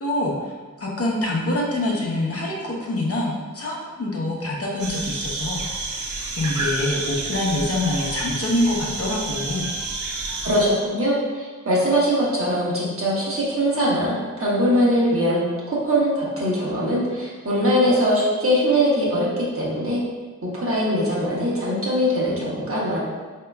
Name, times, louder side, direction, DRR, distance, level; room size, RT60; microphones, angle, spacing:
voice 1, 0.0-6.1 6.4-9.7, left 1 dB, 50° left, -3 dB, 0.7 m, -25 dB
sound 1, 4.8-10.9, right 3 dB, 70° right, 0.6 m, -29 dB
voice 2, 10.4-20.0 20.5-23.0, equal, 45° right, -6 dB, 1.1 m, -21 dB
4.4 x 2.8 x 2.3 m, 1.4 s
wide cardioid pair, 80°, 31 cm